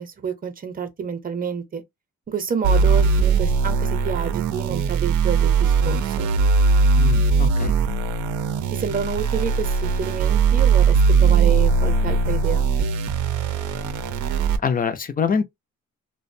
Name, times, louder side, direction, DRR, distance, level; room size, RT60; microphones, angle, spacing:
voice 1, 0.0-1.8 2.3-6.3 8.8-12.7, right 6 dB, 30° right, 0.7 m, -29 dB
sound 1, 2.6-14.6, right 5 dB, 75° right, 0.5 m, -19 dB
voice 2, 6.9-7.7 14.6-15.4, left 6 dB, 30° left, 0.5 m, -24 dB
2.5 x 2.1 x 2.5 m
cardioid pair, 90°, 30 cm